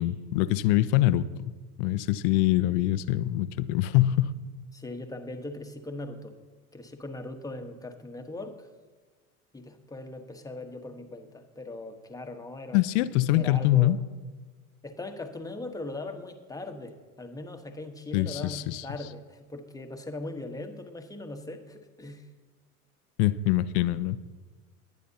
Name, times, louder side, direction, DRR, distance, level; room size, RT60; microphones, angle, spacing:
voice 1, 0.0-1.4 1.8-4.3 12.7-14.0 18.1-18.8 23.2-24.2, left 14 dB, 50° left, 16 dB, 0.6 m, -24 dB
voice 2, 4.7-6.3 6.7-8.7 9.5-12.8 13.3-14.0 14.8-22.2, left 2 dB, 10° left, 5 dB, 1.2 m, -40 dB
21.5 x 9.3 x 2.8 m, 1.3 s
hypercardioid pair, 85°, 44 cm